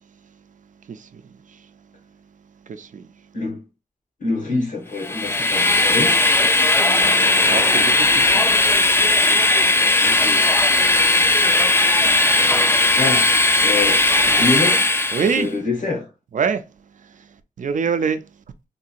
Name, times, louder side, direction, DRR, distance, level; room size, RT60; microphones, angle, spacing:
voice 1, 0.9-1.7 2.6-3.1 6.7-8.6 9.6-9.7 10.7-11.3 12.8-12.9 15.1-15.5 16.3-16.6 17.0-17.3 17.6-18.3, right 6 dB, 65° right, 0.5 m, -27 dB
voice 2, 4.2-6.2 10.0-10.5 12.9-13.3 13.6-14.8 15.3-16.1, left 3 dB, 65° left, 1.7 m, -25 dB
Train, 5.0-15.4, left 2 dB, 15° left, 0.4 m, -17 dB
3.7 x 2.8 x 2.4 m
wide cardioid pair, 100°, 14 cm